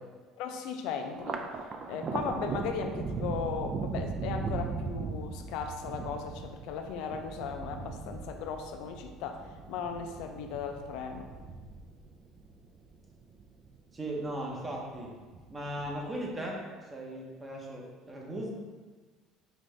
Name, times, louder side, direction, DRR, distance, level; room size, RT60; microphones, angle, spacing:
voice 1, 0.4-1.4 1.9-9.4 9.7-11.3, left 6 dB, 70° left, 5 dB, 0.4 m, -37 dB
Thunder, 1.1-13.8 14.2-15.0 15.3-16.2, right 4 dB, 30° right, 0.3 m, -38 dB
voice 2, 13.9-15.1 15.5-18.5, right 1 dB, 15° right, -1 dB, 0.7 m, -37 dB
5.2 x 2.6 x 3.2 m, 1.4 s
cardioid pair, 150°, 0 cm